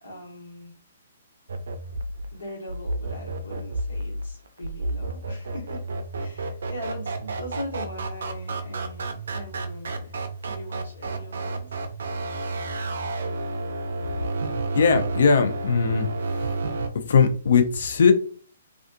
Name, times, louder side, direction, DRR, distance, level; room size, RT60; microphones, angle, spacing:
voice 1, 0.0-0.7 2.3-5.8 6.2-10.1 10.4-11.7, equal, 80° left, 0 dB, 1.1 m, -40 dB
sound 1, 1.5-16.9, right 2 dB, 70° right, 0.4 m, -31 dB
voice 2, 14.7-16.1 16.3-16.4 17.1-18.1, left 5 dB, 65° left, 8 dB, 0.5 m, -19 dB
2.4 x 2.4 x 2.5 m, 0.44 s
hypercardioid pair, 130°, 0 cm